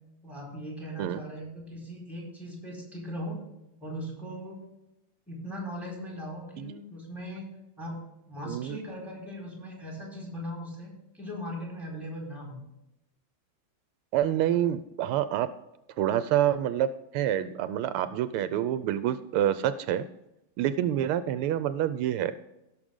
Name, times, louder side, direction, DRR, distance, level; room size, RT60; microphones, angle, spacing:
voice 1, 0.2-3.4 3.8-4.7 5.3-7.5 7.8-12.6, equal, ahead, -2 dB, 4.3 m, -39 dB
voice 2, 8.5-8.8 14.1-15.5 16.0-20.0 20.6-22.3, right 11 dB, 85° right, 13 dB, 1.5 m, -27 dB
16.5 x 6.6 x 3.7 m, 0.89 s
omnidirectional pair, 2.4 m